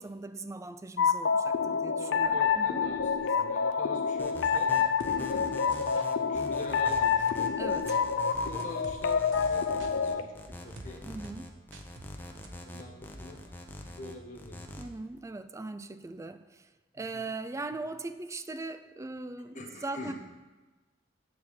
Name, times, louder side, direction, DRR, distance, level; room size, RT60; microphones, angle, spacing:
voice 1, 0.0-2.9 7.6-8.0 11.0-11.5 14.8-16.7 16.9-20.1, right 3 dB, 15° right, 0.4 m, -40 dB
sound 1, 1.0-10.2, left 6 dB, 80° left, 0.5 m, -28 dB
voice 2, 2.0-5.5 6.2-7.6 8.3-11.1 12.1-13.4 13.6-14.8 17.0-17.2 17.7-17.8 19.5-20.1, left 2 dB, 40° left, 1.4 m, -45 dB
sound 2, 4.2-14.8, left 1 dB, 10° left, 0.8 m, -44 dB
sound 3, 5.0-5.1 5.7-6.1 6.9-7.4 7.9-8.0 8.6-9.0 9.3-9.9 10.8-10.9 11.2-11.4 11.7-12.1 12.4-12.5, right 3 dB, 80° right, 0.8 m, -47 dB
8.6 x 4.4 x 7.2 m
head